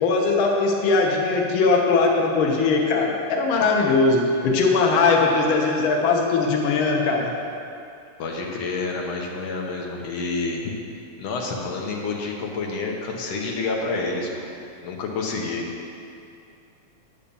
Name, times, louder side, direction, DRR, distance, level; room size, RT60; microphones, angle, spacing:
voice 1, 0.0-7.4, left 4 dB, 90° left, 0 dB, 1.1 m, -20 dB
voice 2, 8.2-10.6 11.2-14.5 14.8-15.6, left 3 dB, 65° left, -1 dB, 1.8 m, -28 dB
8.9 x 5.7 x 6.9 m, 2.6 s
omnidirectional pair, 3.7 m